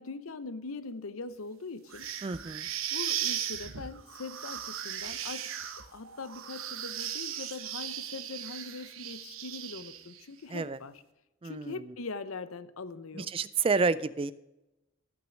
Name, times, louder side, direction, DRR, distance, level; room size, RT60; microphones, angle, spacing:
voice 1, 0.0-2.1 2.9-5.5 5.9-10.9 11.4-13.3, left 3 dB, 85° left, 13 dB, 0.8 m, -41 dB
sound 1, 1.9-10.2, right 10 dB, 80° right, 1.0 m, -37 dB
voice 2, 2.2-2.7 10.5-10.8 11.4-11.8 13.1-14.3, right 4 dB, 25° right, 17 dB, 0.3 m, -29 dB
14.5 x 6.2 x 6.3 m, 0.98 s
head